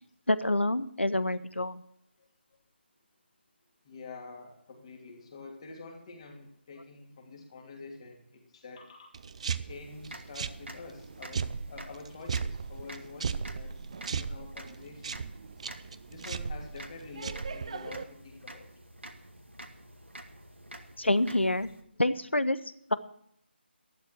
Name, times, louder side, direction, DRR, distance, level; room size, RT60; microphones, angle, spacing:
voice 1, 0.3-1.8 21.0-21.7 22.0-22.6 22.9-23.0, left 1 dB, 80° left, 15 dB, 0.9 m, -27 dB
voice 2, 3.8-9.2 9.6-15.2 16.1-18.7, left 3 dB, 30° left, 1 dB, 2.9 m, -47 dB
sound 1, 9.1-18.0, right 5 dB, 35° right, 0.5 m, -37 dB
sound 2, 9.7-21.8, right 1 dB, 80° right, 1.9 m, -49 dB
12.0 x 12.0 x 4.5 m, 0.71 s
figure-of-eight pair, 155°, 6 cm